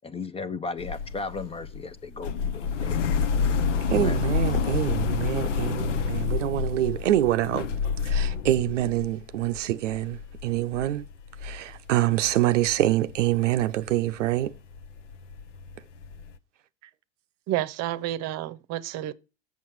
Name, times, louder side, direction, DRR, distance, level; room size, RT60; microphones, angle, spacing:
voice 1, 0.0-3.0 3.9-4.2, left 4 dB, 15° left, 0.5 m, -35 dB
sound 1, 0.8-12.4 12.7-16.4, left 6 dB, 85° left, 0.8 m, -29 dB
voice 2, 3.9-7.7 8.0-11.0 11.4-14.5, right 13 dB, 85° right, 0.6 m, -25 dB
voice 3, 17.5-19.1, right 13 dB, 45° right, 0.8 m, -30 dB
7.4 x 5.8 x 4.6 m
hypercardioid pair, 90°, 36 cm